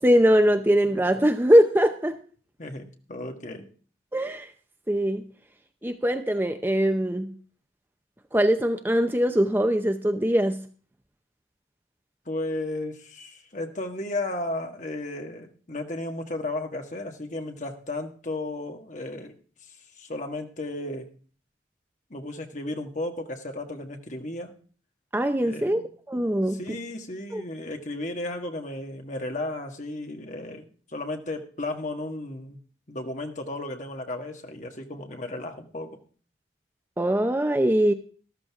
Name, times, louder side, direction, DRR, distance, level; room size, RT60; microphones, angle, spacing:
voice 1, 0.0-2.2 4.1-4.5 4.9-5.2 5.8-7.3 8.3-10.6 25.1-25.8 26.1-26.6 27.3-27.4 37.0-37.9, equal, 10° right, 8 dB, 0.6 m, -22 dB
voice 2, 2.6-3.7 12.2-19.3 19.6-21.1 22.1-24.5 25.4-25.9 26.5-32.6 32.9-36.0, left 2 dB, 40° left, 4 dB, 1.7 m, -34 dB
13.5 x 13.0 x 3.6 m, 0.42 s
head